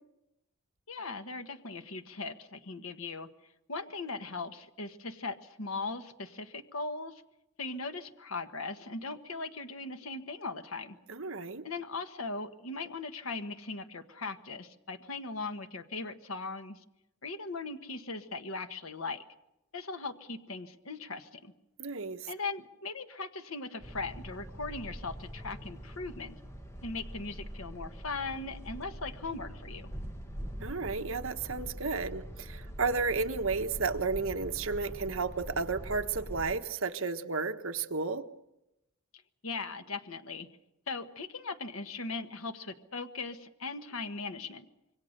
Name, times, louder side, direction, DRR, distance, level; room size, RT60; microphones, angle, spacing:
voice 1, 0.9-3.3 3.7-7.2 7.6-11.0 11.6-16.8 17.2-19.2 19.7-21.5 22.3-26.4 26.8-29.9 39.4-40.5 40.9-44.7, left 3 dB, 70° left, 8 dB, 1.4 m, -39 dB
voice 2, 11.1-11.6 21.8-22.2 30.6-38.2, right 4 dB, 65° right, 6 dB, 1.3 m, -32 dB
sound 1, 23.8-36.5, equal, 15° left, 1.4 m, -43 dB
26.5 x 23.0 x 6.6 m, 0.88 s
head